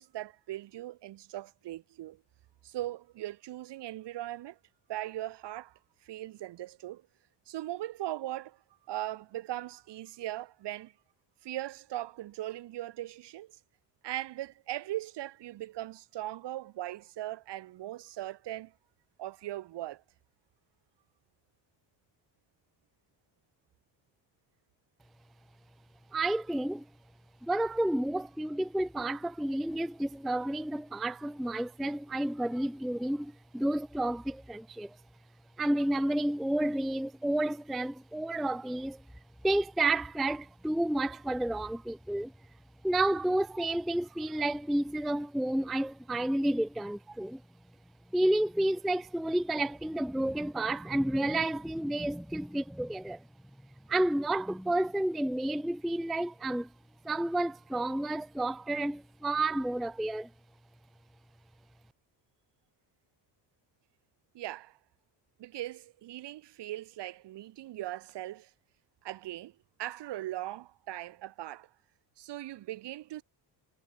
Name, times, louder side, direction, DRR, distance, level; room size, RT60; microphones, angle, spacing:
voice 1, 0.0-2.2 2.6-4.6 4.9-7.0 7.5-8.6 8.9-10.9 11.4-13.6 14.0-18.7 19.2-20.0 64.3-64.8 65.4-68.5 69.0-71.7 72.2-73.2, right 14 dB, 70° right, 4.5 m, -39 dB
voice 2, 26.1-26.9 27.4-35.0 35.6-39.0 39.4-42.3 42.8-47.4 48.1-53.2 53.9-56.7 57.0-60.3, right 1 dB, ahead, 0.3 m, -30 dB
cardioid pair, 165°, 43 cm